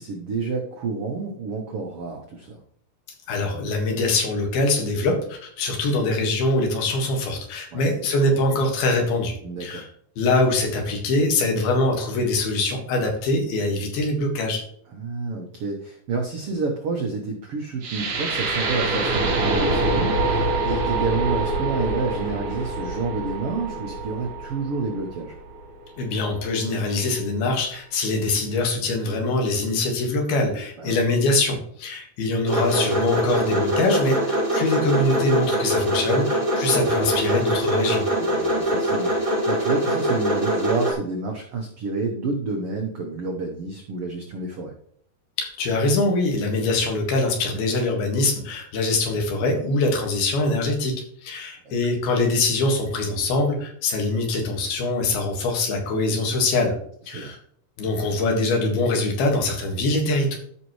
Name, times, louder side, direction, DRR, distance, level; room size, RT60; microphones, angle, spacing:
voice 1, 0.0-2.6 7.7-7.8 9.4-9.9 14.9-25.4 30.8-31.0 38.2-44.7 51.6-51.8 57.1-57.4, right 4 dB, 85° right, 2 dB, 1.2 m, -29 dB
voice 2, 3.3-9.3 9.6-9.9 10.2-14.6 26.0-38.1 45.4-50.9 51.2-56.7 57.1-57.4 57.8-60.4, left 2 dB, 85° left, 2 dB, 3.6 m, -23 dB
sound 1, 17.8-25.8, right 2 dB, 65° right, 4.1 m, -25 dB
sound 2, 32.4-40.9, right 1 dB, 20° right, 0.9 m, -23 dB
13.0 x 5.6 x 3.1 m, 0.63 s
omnidirectional pair, 4.3 m